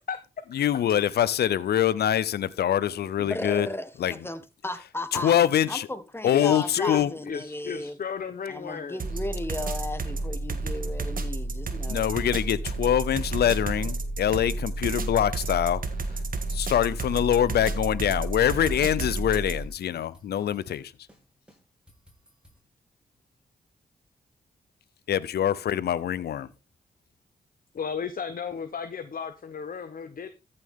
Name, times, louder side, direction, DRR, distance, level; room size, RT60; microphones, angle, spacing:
voice 1, 0.5-3.7 4.0-4.2 5.1-5.9 6.2-7.1 11.9-15.8 16.5-20.9 25.1-26.5, left 10 dB, 85° left, 0.6 m, -24 dB
voice 2, 3.2-5.3 5.7-8.0 8.5-12.1, left 1 dB, 15° left, 1.6 m, -35 dB
voice 3, 6.3-9.0 27.7-30.3, left 6 dB, 60° left, 1.0 m, -34 dB
sound 1, 9.0-19.7, right 2 dB, 60° right, 1.7 m, -31 dB
sound 2, 14.8-15.8 16.1-16.2 16.5-18.2 18.4-18.5 18.8-20.8 21.1-21.2 21.5-22.6, equal, 5° right, 5.5 m, -57 dB
14.0 x 6.7 x 3.7 m
cardioid pair, 50°, 16 cm